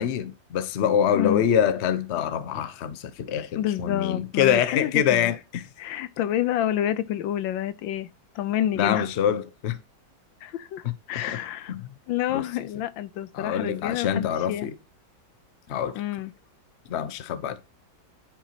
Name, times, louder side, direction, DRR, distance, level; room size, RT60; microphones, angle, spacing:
voice 1, 0.0-5.6 8.8-9.8 10.8-10.9 11.3-11.4 11.7-11.9 12.3-12.5 13.3-14.7 15.7-16.0 16.9-17.6, left 9 dB, 55° left, 0.7 m, -25 dB
voice 2, 3.6-5.3 5.8-8.1 8.3-9.1 10.4-11.7 12.1-14.7 15.9-16.3, left 12 dB, 85° left, 1.4 m, -28 dB
10.5 x 4.6 x 2.8 m
omnidirectional pair, 2.1 m